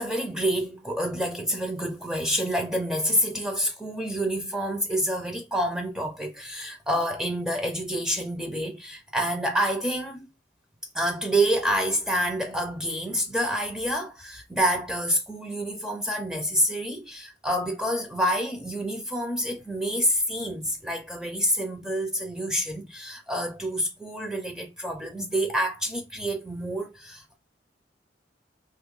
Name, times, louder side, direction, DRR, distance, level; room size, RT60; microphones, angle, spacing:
voice 1, 0.0-10.3 10.9-27.4, equal, 5° right, 0.5 m, -28 dB
2.8 x 2.6 x 3.7 m
head